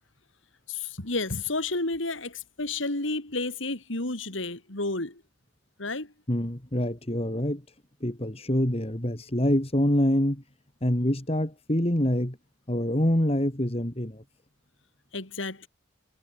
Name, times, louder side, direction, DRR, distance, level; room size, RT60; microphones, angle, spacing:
voice 1, 0.7-5.2 5.8-6.1 15.1-15.7, left 2 dB, 80° left, 3.8 m, -31 dB
voice 2, 6.3-7.6 8.0-10.4 10.8-12.4 12.7-14.2, equal, 30° left, 2.6 m, -25 dB
head